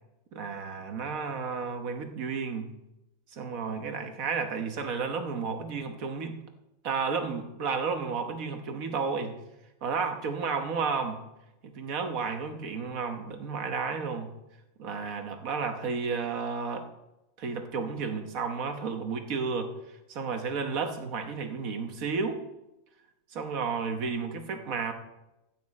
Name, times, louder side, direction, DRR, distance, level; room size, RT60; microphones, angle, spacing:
voice 1, 0.3-2.7 3.3-6.4 6.8-9.3 9.8-11.2 11.6-14.3 14.8-16.8 17.4-19.7 20.1-22.4 23.3-24.9, right 5 dB, 70° right, 6 dB, 1.6 m, -32 dB
14.5 x 8.8 x 4.2 m, 0.94 s
omnidirectional pair, 1.5 m